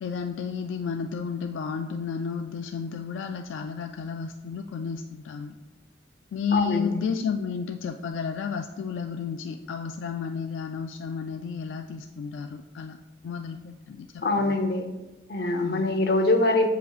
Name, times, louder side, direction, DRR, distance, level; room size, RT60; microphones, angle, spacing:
voice 1, 0.0-5.5 6.3-13.0 13.2-14.6 15.6-15.9, left 6 dB, 85° left, 5 dB, 0.3 m, -32 dB
voice 2, 6.5-7.0 14.2-14.9 15.3-16.7, left 2 dB, 60° left, 5 dB, 0.7 m, -24 dB
7.8 x 5.1 x 2.4 m, 1.1 s
head